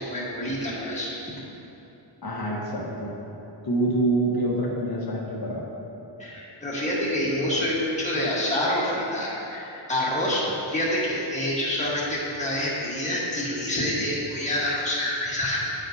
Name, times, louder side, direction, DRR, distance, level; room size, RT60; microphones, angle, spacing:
voice 1, 0.0-1.4 6.2-15.7, left 1 dB, 15° left, -7 dB, 1.4 m, -27 dB
voice 2, 2.2-3.2 3.6-5.7, right 2 dB, 50° left, -2 dB, 1.3 m, -26 dB
10.0 x 9.2 x 2.8 m, 3.0 s
wide cardioid pair, 170°, 49 cm